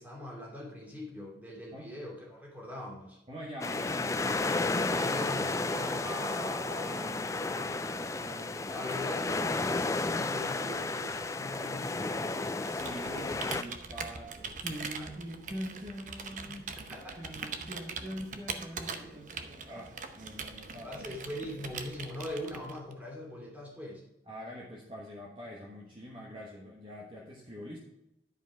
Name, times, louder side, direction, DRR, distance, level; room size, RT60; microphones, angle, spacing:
voice 1, 0.0-3.2 4.9-6.1 8.7-12.4 14.9-15.1 16.9-17.5 18.8-19.2 20.8-24.0, left 1 dB, 10° right, -4 dB, 2.6 m, -42 dB
voice 2, 3.3-4.3 6.0-8.9 9.3-9.4 12.7-16.8 17.2-21.0 24.3-27.8, equal, 30° right, -3 dB, 1.3 m, -44 dB
sound 1, 3.6-13.6, left 3 dB, 15° left, 0.3 m, -32 dB
Computer keyboard, 12.6-22.9, right 5 dB, 45° right, 0.8 m, -42 dB
11.0 x 5.0 x 4.7 m, 0.87 s
head